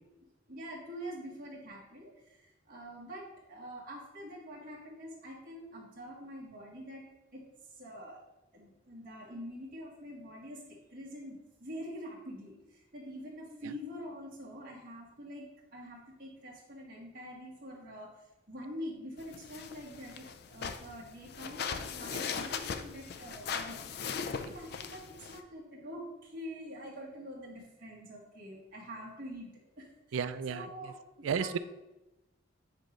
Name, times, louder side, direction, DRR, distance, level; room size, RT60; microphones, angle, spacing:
voice 1, 0.5-7.0 7.3-7.4 7.7-8.2 8.5-10.6 10.9-29.5 29.8-30.2 30.5-30.9 31.2-31.6, equal, 45° right, -5 dB, 1.5 m, -45 dB
sound 1, 19.2-25.4, left 6 dB, 55° left, 0.4 m, -39 dB
voice 2, 30.1-30.9 31.2-31.6, right 6 dB, 90° right, 13 dB, 0.4 m, -34 dB
7.5 x 3.0 x 5.0 m, 0.98 s
head